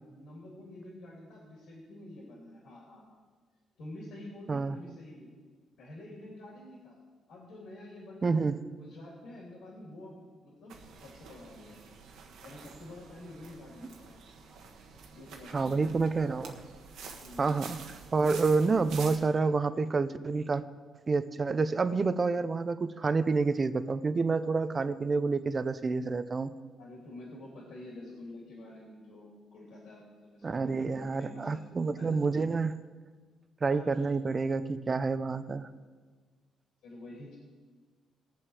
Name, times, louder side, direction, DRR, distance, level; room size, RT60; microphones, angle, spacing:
voice 1, 0.0-3.2 3.8-5.3 5.8-7.0 7.3-8.5 8.8-11.8 12.4-14.1 15.1-15.9 17.2-17.5 26.8-31.6 31.9-32.2 33.7-34.1 36.8-37.4, left 1 dB, 75° left, -3 dB, 3.4 m, -48 dB
voice 2, 8.2-8.6 15.5-16.6 17.4-17.8 18.1-20.6 21.1-26.5 30.4-32.7 33.6-35.7, right 4 dB, 35° right, 13 dB, 0.7 m, -28 dB
sound 1, 10.7-19.2, right 5 dB, 80° right, 1.5 m, -48 dB
19.5 x 7.5 x 5.0 m, 1.4 s
cardioid pair, 90°, 0 cm